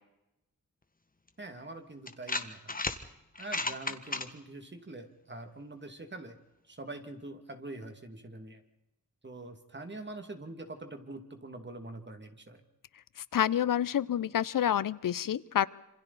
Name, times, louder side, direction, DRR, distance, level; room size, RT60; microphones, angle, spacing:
sound 1, 1.3-1.4 2.1-3.0 3.4-4.3, left 3 dB, 25° left, 1.7 m, -33 dB
voice 1, 1.4-2.8 3.4-6.4 6.7-8.6 9.2-12.6, right 2 dB, 35° right, 6 dB, 2.5 m, -44 dB
voice 2, 13.3-15.7, left 10 dB, 85° left, 19 dB, 0.8 m, -28 dB
27.0 x 26.0 x 4.2 m, 0.89 s
wide cardioid pair, 80°, 32 cm